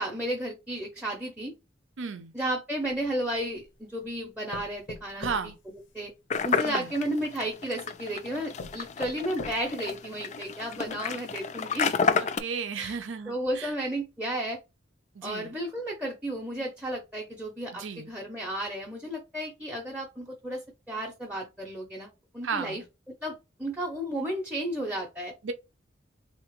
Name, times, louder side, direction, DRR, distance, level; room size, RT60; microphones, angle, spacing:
voice 1, 0.0-1.5 2.3-5.5 5.9-6.1 6.4-11.9 12.7-13.0 13.3-14.6 15.2-22.8 23.2-25.3, right 1 dB, 5° right, 0.6 m, -33 dB
voice 2, 2.0-2.3 5.2-5.5 6.6-6.9 12.2-13.7 15.2-15.5 17.7-18.1 22.4-22.8 25.4-25.5, right 5 dB, 85° right, 0.5 m, -34 dB
sound 1, 2.8-3.7 4.5-6.5 7.5-7.6 8.1-8.2 8.6-9.9 10.4-10.5 10.8-10.9, left 3 dB, 80° left, 0.7 m, -43 dB
sound 2, 6.3-12.4, left 5 dB, 40° left, 0.3 m, -30 dB
3.4 x 2.8 x 3.0 m
head